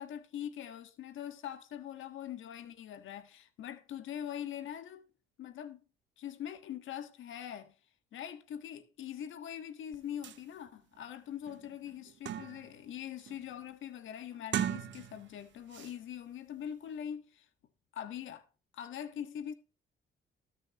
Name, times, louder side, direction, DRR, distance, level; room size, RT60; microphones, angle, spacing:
voice 1, 0.0-5.1 5.4-5.8 6.2-7.7 8.1-17.4 17.9-18.4 18.7-19.5, left 9 dB, 80° left, 1.5 m, -43 dB
sound 1, 9.9-10.0 10.2-10.4 10.9-11.0 11.5-12.8 13.2-13.5 14.4-15.4 15.7-15.9, right 10 dB, 70° right, 1.0 m, -38 dB
19.5 x 6.5 x 3.0 m
cardioid pair, 90°, 20 cm